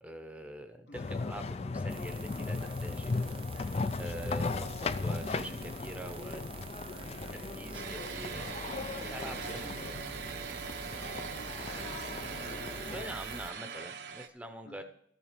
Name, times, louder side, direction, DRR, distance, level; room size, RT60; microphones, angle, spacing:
voice 1, 0.0-6.4 7.3-8.6 8.9-10.1 12.9-14.8, right 1 dB, 5° right, 6 dB, 0.8 m, -44 dB
voice 2, 0.9-1.2 6.9-7.9 9.4-12.3 14.6-14.8, left 1 dB, 70° left, 3 dB, 1.6 m, -54 dB
sound 1, 0.9-13.1, left 3 dB, 35° left, 0.4 m, -37 dB
sound 2, 1.9-13.5, right 4 dB, 30° right, 0.4 m, -47 dB
sound 3, 7.7-14.3, right 6 dB, 70° right, 0.9 m, -42 dB
13.5 x 7.3 x 5.1 m, 0.71 s
head